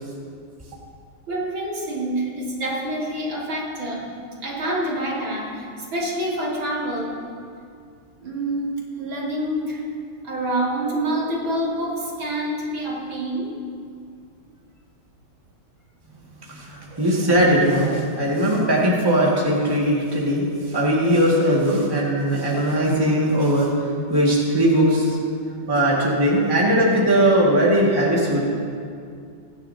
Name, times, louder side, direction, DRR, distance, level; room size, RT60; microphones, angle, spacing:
voice 1, 1.3-4.1 4.4-7.1 8.2-8.7 9.0-9.8 10.2-13.5 16.9-17.0, right 1 dB, 80° right, -5 dB, 3.2 m, -27 dB
voice 2, 16.5-25.2 25.7-28.5, right 1 dB, 10° right, -4 dB, 1.9 m, -19 dB
22.5 x 10.0 x 2.8 m, 2.3 s
omnidirectional pair, 2.1 m